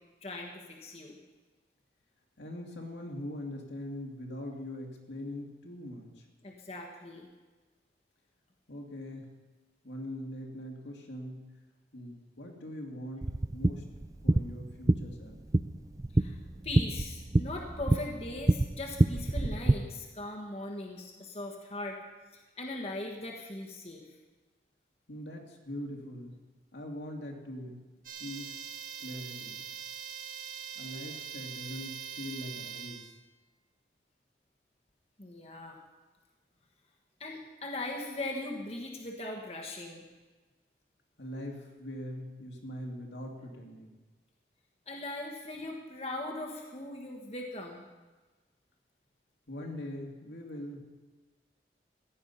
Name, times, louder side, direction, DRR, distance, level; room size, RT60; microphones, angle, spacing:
voice 1, 0.2-1.2 6.4-7.3 16.1-16.4 16.6-22.0 22.3-24.0 35.2-35.8 37.2-40.0 44.9-47.9, left 2 dB, 35° left, 0 dB, 1.4 m, -39 dB
voice 2, 2.4-6.2 8.7-9.3 9.8-11.4 11.9-13.8 14.2-15.4 25.1-26.4 26.7-27.8 28.2-28.6 29.0-29.7 30.8-33.1 41.2-44.0 49.5-50.8, left 1 dB, 75° left, 1 dB, 2.2 m, -42 dB
sound 1, 13.2-19.7, right 2 dB, 20° right, 0.3 m, -28 dB
sound 2, 28.0-33.1, right 8 dB, 50° right, 1.6 m, -42 dB
15.0 x 10.5 x 5.6 m, 1.3 s
head